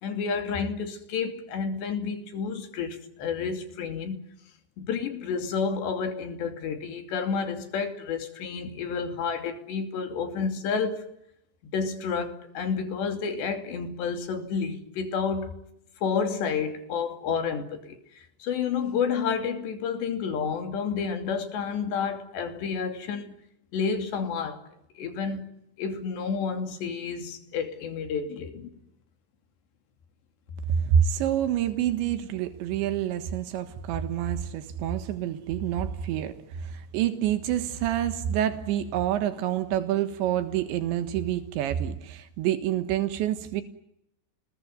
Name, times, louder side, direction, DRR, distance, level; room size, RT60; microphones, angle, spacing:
voice 1, 0.0-4.2 4.8-11.0 11.7-15.6 16.0-23.3 23.7-24.6 25.0-25.4 25.8-28.7, left 6 dB, 75° left, 5.0 m, -30 dB
voice 2, 30.7-43.6, right 10 dB, 85° right, 3.8 m, -27 dB
29.5 x 21.0 x 9.4 m
omnidirectional pair, 5.0 m